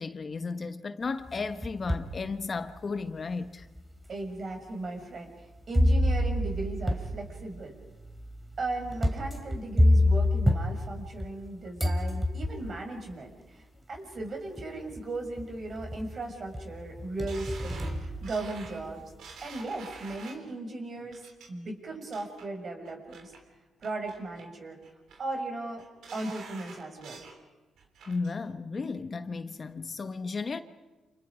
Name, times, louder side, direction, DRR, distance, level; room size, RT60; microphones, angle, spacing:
voice 1, 0.0-3.7 28.1-30.6, left 4 dB, 40° left, 1.1 m, -34 dB
sound 1, 1.3-2.2 2.8-2.9 3.8-3.9 5.7-11.5 11.8-12.8 13.9-14.0 14.6-15.0 15.4-16.2 16.5-18.9, left 1 dB, 10° right, 3.1 m, -27 dB
voice 2, 4.1-7.7 8.6-19.0 19.4-21.2 21.5-23.3 23.8-24.8 25.2-25.8 26.1-27.2, right 2 dB, 45° right, 6.8 m, -37 dB
sound 2, 17.3-20.5 21.1-21.5 21.9-22.5 22.8-23.4 23.8-24.5 24.8-25.4 25.8-27.4 27.8-28.3 28.7-28.8, right 5 dB, 80° right, 3.8 m, -48 dB
29.5 x 28.5 x 5.0 m
cardioid pair, 90°, 0 cm